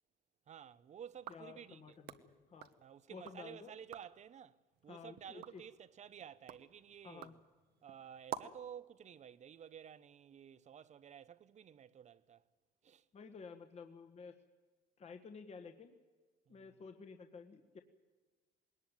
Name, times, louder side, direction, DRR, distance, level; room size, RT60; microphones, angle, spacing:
voice 1, 0.5-2.0 2.8-4.6 4.8-7.4 7.8-12.4 12.8-13.1 16.5-16.8, right 8 dB, 45° right, 0.8 m, -53 dB
sound 1, 1.1-3.4 3.8-4.2 4.7-8.7, right 11 dB, 75° right, 1.2 m, -51 dB
voice 2, 1.3-2.7 3.1-3.7 4.9-5.6 7.0-7.4 13.1-14.3 15.0-16.0 16.5-17.8, left 5 dB, 40° left, 1.6 m, -52 dB
20.5 x 19.0 x 9.1 m
cardioid pair, 110°, 17 cm